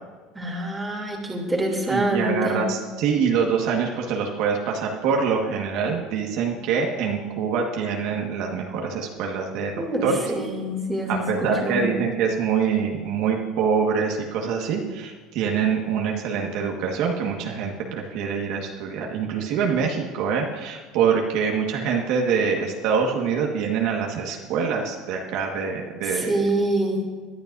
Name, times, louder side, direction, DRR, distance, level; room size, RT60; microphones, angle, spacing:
voice 1, 0.3-2.6 9.8-11.2 11.6-11.9 26.1-27.0, right 1 dB, 10° right, -1 dB, 3.0 m, -25 dB
voice 2, 1.9-10.2 11.1-26.5, right 6 dB, 65° right, 0 dB, 1.6 m, -25 dB
20.5 x 12.0 x 2.7 m, 1.4 s
supercardioid pair, 130°, 0 cm